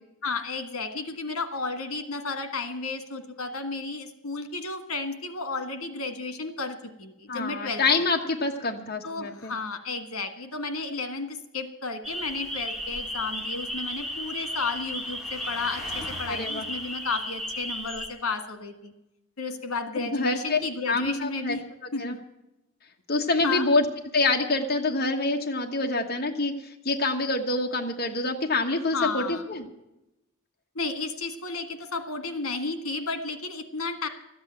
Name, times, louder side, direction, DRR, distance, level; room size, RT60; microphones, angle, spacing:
voice 1, 0.2-7.8 9.0-18.9 19.4-21.6 21.9-22.2 23.4-23.7 28.9-29.4 30.8-34.1, left 3 dB, 85° left, 8 dB, 1.6 m, -33 dB
voice 2, 7.3-9.5 16.3-16.6 20.0-20.6 20.9-21.6 22.0-22.2 23.1-23.8 24.1-26.5 26.8-29.6, left 3 dB, 45° left, 1 dB, 1.2 m, -26 dB
sound 1, 12.0-18.1, equal, ahead, 2.0 m, -34 dB
13.5 x 8.8 x 8.8 m, 0.91 s
head